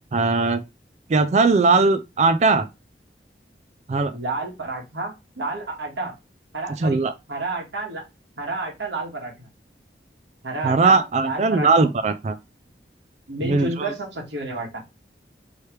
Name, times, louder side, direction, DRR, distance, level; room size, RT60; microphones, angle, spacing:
voice 1, 0.1-0.6 1.1-2.7 3.9-4.1 6.8-7.1 10.6-12.4 13.4-13.9, right 3 dB, 40° right, 0.3 m, -19 dB
voice 2, 4.1-6.1 6.5-7.0 7.3-8.0 8.4-9.5 10.4-11.9 13.3-14.8, right 2 dB, 90° right, 1.5 m, -30 dB
3.2 x 3.2 x 4.4 m
head